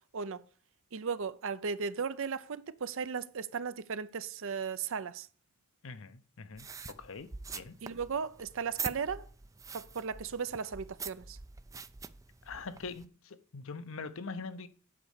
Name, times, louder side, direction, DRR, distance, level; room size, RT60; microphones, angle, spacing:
voice 1, 0.1-0.4 0.9-5.3 7.8-9.3 9.7-11.4, right 6 dB, 65° right, 0.6 m, -36 dB
voice 2, 5.8-7.7 12.5-14.7, left 4 dB, 65° left, 0.8 m, -43 dB
sound 1, 6.6-13.1, right 5 dB, 15° right, 0.4 m, -44 dB
8.5 x 5.3 x 6.6 m
head